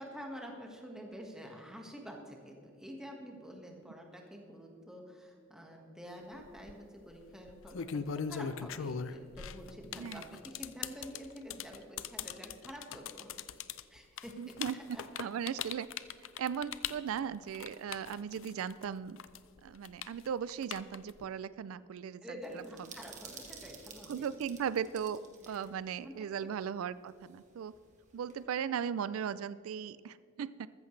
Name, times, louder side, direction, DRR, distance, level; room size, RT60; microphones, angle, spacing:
voice 1, 0.0-13.3 13.9-14.4 14.7-15.0 22.2-24.3 25.4-25.5 26.0-26.1 26.4-26.5, equal, 5° right, 0 dB, 1.5 m, -48 dB
sound 1, 6.4-6.7 7.5-18.8 19.2-21.2, left 7 dB, 65° left, 0.5 m, -40 dB
voice 2, 14.4-14.8 15.2-15.9 16.4-19.2 19.6-22.6 24.1-25.2 25.5-27.7 28.1-30.7, right 8 dB, 85° right, 16 dB, 0.3 m, -37 dB
sound 2, 22.4-25.7 26.0-26.1 27.1-28.4, right 5 dB, 35° right, 1.7 m, -52 dB
14.0 x 14.0 x 3.2 m, 2.3 s
head